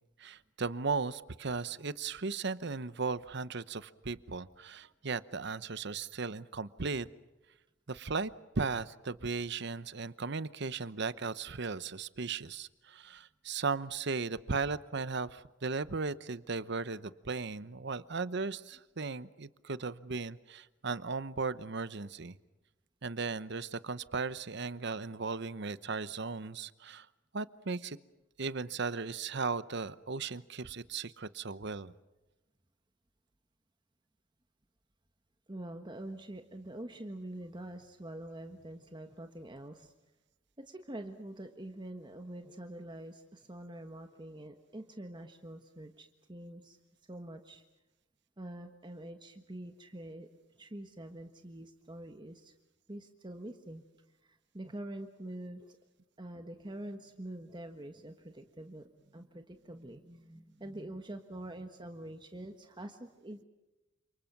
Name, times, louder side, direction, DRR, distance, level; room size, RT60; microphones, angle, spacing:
voice 1, 0.2-7.1 7.9-8.3 8.6-22.4 23.0-27.1 27.3-28.0 28.4-31.9, right 4 dB, 65° right, 15 dB, 0.9 m, -36 dB
voice 2, 35.5-39.9 40.6-46.8 47.1-47.6 48.4-50.3 50.6-52.5 52.9-53.8 54.2-55.8 56.2-63.4, right 1 dB, 25° right, 6 dB, 1.4 m, -45 dB
29.0 x 27.5 x 6.1 m, 1.0 s
head